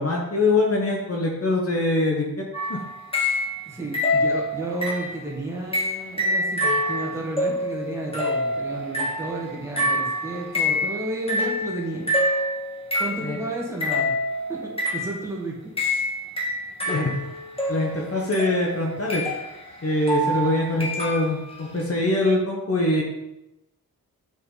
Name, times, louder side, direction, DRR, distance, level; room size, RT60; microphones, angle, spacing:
voice 1, 0.0-2.2 2.7-2.8 13.2-13.4 16.8-17.1 17.7-19.2 19.8-23.0, left 2 dB, 40° left, -2 dB, 1.3 m, -23 dB
sound 1, 2.5-3.7 3.9-5.3 5.7-13.4 13.8-15.3 15.8-21.5, left 1 dB, 15° left, 1.6 m, -26 dB
voice 2, 3.6-12.1 13.0-14.2 14.5-16.1 20.7-20.9, right 1 dB, 10° right, -4 dB, 2.3 m, -32 dB
7.6 x 5.9 x 4.1 m, 0.91 s
wide cardioid pair, 115°, 36 cm